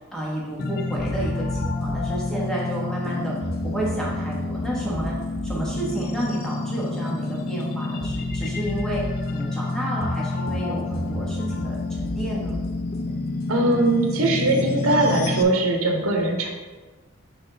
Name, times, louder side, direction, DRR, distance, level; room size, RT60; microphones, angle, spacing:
voice 1, 0.1-12.6, right 1 dB, 5° left, -6 dB, 1.4 m, -31 dB
sound 1, 0.6-15.4, left 3 dB, 45° left, 0.4 m, -29 dB
sound 2, 1.0-2.3 3.4-7.1 8.0-9.2 10.0-13.9, right 1 dB, 60° right, 0.9 m, -34 dB
voice 2, 13.5-16.5, right 2 dB, 85° right, 1 dB, 1.0 m, -21 dB
6.3 x 4.2 x 3.9 m, 1.3 s
head